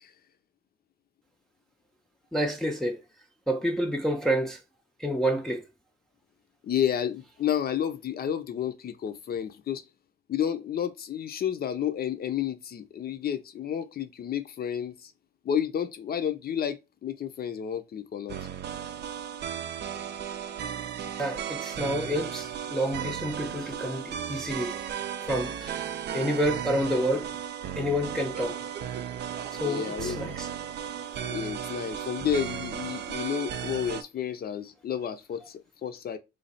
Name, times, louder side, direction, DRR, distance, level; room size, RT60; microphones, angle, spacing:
voice 1, 2.3-3.0 3.5-4.6 5.0-5.6 21.2-24.8 25.2-25.9 26.1-27.3 27.7-28.6 29.5-30.5 31.1-31.2, equal, ahead, 0.5 m, -29 dB
voice 2, 6.6-9.8 10.3-15.1 15.4-18.4 29.6-30.3 31.3-36.2, left 9 dB, 50° left, 0.6 m, -31 dB
sound 1, 18.3-34.0, right 9 dB, 60° right, 0.5 m, -35 dB
3.2 x 2.3 x 4.0 m
cardioid pair, 90°, 20 cm